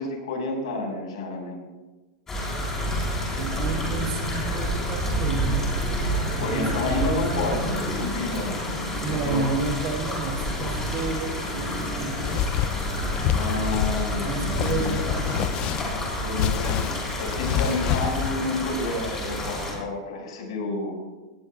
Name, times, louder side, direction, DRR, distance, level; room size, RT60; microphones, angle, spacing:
voice 1, 0.0-1.6 6.1-8.5 9.1-9.5 13.3-14.5 16.2-21.0, left 2 dB, 85° left, 1 dB, 5.5 m, -30 dB
sound 1, 2.3-19.7, equal, 15° left, 3.9 m, -29 dB
voice 2, 3.3-5.9 6.3-7.3 9.0-12.7 14.2-15.5, right 3 dB, 40° right, 3 dB, 2.2 m, -31 dB
sound 2, 11.6-18.3, left 10 dB, 30° left, 0.4 m, -28 dB
19.5 x 18.0 x 2.4 m, 1.2 s
supercardioid pair, 175°, 3 cm